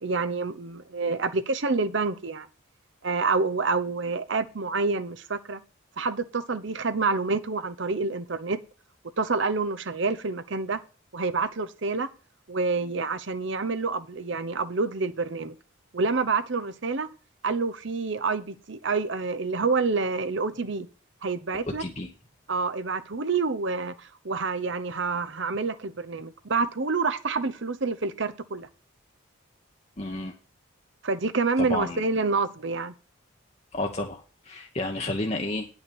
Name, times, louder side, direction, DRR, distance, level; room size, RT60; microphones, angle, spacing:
voice 1, 0.0-2.5 3.0-5.6 6.0-8.6 9.2-10.8 11.1-12.1 12.5-15.5 15.9-17.1 17.4-20.9 21.2-21.8 22.5-28.7 31.0-32.9, right 4 dB, 60° right, 0.8 m, -28 dB
voice 2, 21.8-22.1 30.0-30.3 31.6-32.1 33.7-35.7, left 2 dB, 30° left, 1.0 m, -31 dB
9.8 x 5.8 x 6.9 m
head